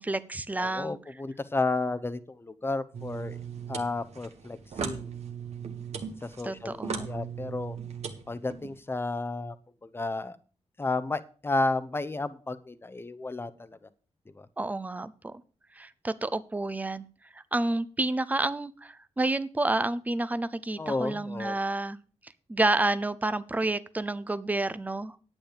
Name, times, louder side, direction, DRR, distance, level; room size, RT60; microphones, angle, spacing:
voice 1, 0.0-1.0 6.4-7.1 14.6-15.3 15.8-17.0 17.5-22.0 22.5-25.2, right 2 dB, 15° right, 15 dB, 0.6 m, -29 dB
voice 2, 0.6-3.4 3.7-5.2 6.2-7.8 8.3-9.6 9.8-10.4 10.8-13.9 14.3-14.5 20.8-21.6, left 2 dB, 20° left, 12 dB, 0.8 m, -32 dB
sound 1, 2.9-8.8, right 6 dB, 70° right, 1.6 m, -38 dB
10.5 x 8.8 x 5.1 m, 0.40 s
wide cardioid pair, 105°, 11 cm